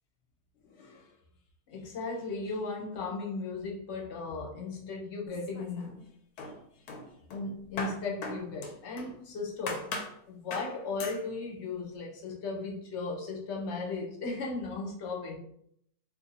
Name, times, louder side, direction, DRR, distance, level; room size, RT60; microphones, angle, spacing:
voice 1, 0.6-1.2 1.7-6.0 6.4-6.9 7.3-9.9 10.3-15.4, left 3 dB, 55° left, 1.0 m, -36 dB
sound 1, 5.3-6.0 6.4-9.2 9.7-10.2 10.5-10.7 11.0-11.2, left 3 dB, 85° left, 1.2 m, -39 dB
2.8 x 2.6 x 4.0 m
omnidirectional pair, 1.6 m